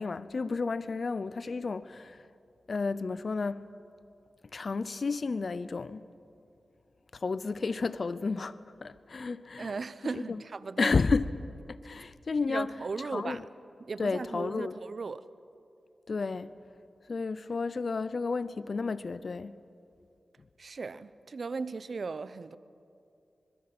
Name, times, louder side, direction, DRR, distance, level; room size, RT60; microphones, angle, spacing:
voice 1, 0.0-2.2 2.7-3.7 4.5-6.1 7.1-9.7 10.1-10.4 10.8-11.3 11.7-12.7 13.1-13.4 14.0-14.7 16.1-16.6 17.1-19.6, left 4 dB, 60° left, 0.7 m, -32 dB
voice 2, 9.6-10.9 12.5-13.4 13.8-15.2 20.6-22.6, right 4 dB, 65° right, 0.7 m, -37 dB
25.0 x 21.5 x 6.1 m
cardioid pair, 40°, 0 cm